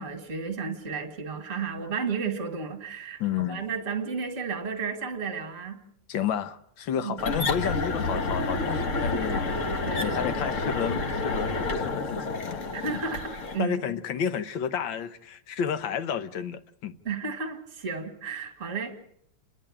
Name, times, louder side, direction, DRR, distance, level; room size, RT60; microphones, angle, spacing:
voice 1, 0.0-3.2 3.5-5.8 7.0-7.2 9.8-10.4 12.7-13.8 17.0-19.0, right 5 dB, 35° right, 2.3 m, -33 dB
voice 2, 3.2-3.6 6.1-9.7 9.9-12.7 13.6-17.0, left 8 dB, 65° left, 1.7 m, -31 dB
sound 1, 7.2-13.6, left 3 dB, 40° left, 1.4 m, -29 dB
29.0 x 11.0 x 8.7 m
omnidirectional pair, 2.3 m